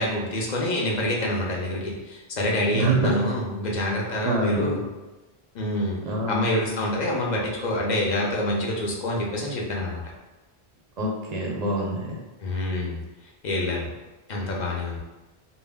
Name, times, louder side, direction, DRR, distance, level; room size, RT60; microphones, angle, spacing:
voice 1, 0.0-4.9 5.5-6.0 6.3-10.0 12.4-13.0 13.4-13.9 14.3-15.0, left 1 dB, 55° left, -2 dB, 0.5 m, -26 dB
voice 2, 2.7-3.1 4.2-4.7 6.1-6.4 11.0-12.2, right 2 dB, 50° right, -2 dB, 0.5 m, -25 dB
2.1 x 2.1 x 3.3 m, 1.1 s
omnidirectional pair, 1.2 m